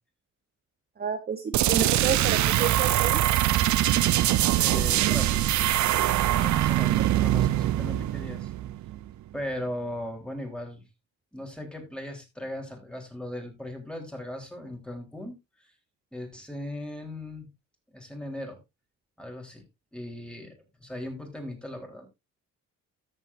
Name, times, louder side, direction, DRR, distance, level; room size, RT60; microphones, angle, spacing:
voice 1, 1.0-3.2 7.0-7.1, right 6 dB, 30° right, 7 dB, 1.0 m, -30 dB
sound 1, 1.5-9.1, right 13 dB, 70° right, 0.7 m, -23 dB
voice 2, 4.5-5.6 6.3-8.5 9.3-10.8 11.3-15.7 16.1-17.5 17.9-18.6 19.2-19.7 19.9-22.1, left 1 dB, 5° left, 3 dB, 3.8 m, -38 dB
13.5 x 7.5 x 2.6 m, 0.22 s
cardioid pair, 90°, 30 cm